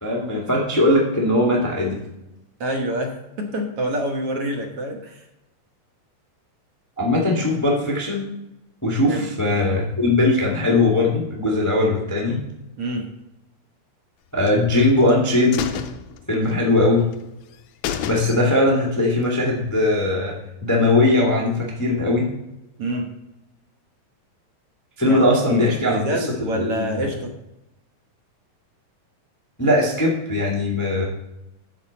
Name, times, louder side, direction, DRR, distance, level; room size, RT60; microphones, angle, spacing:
voice 1, 0.0-2.0 7.0-8.2 8.8-12.4 14.3-15.7 16.3-17.0 18.0-20.3 20.6-22.3 25.0-26.0 26.4-27.1 29.6-31.1, left 2 dB, 20° left, -3 dB, 0.4 m, -20 dB
voice 2, 2.6-5.2 9.1-9.2 12.8-13.1 22.8-23.1 25.0-25.2 25.5-27.3, right 1 dB, 60° right, 2 dB, 1.6 m, -26 dB
sound 1, 14.4-15.1 15.5-16.8 17.1-17.2 17.5-17.6 17.8-18.7 19.1-19.2, left 9 dB, 80° left, 1.7 m, -30 dB
10.5 x 7.1 x 4.1 m, 0.91 s
omnidirectional pair, 4.0 m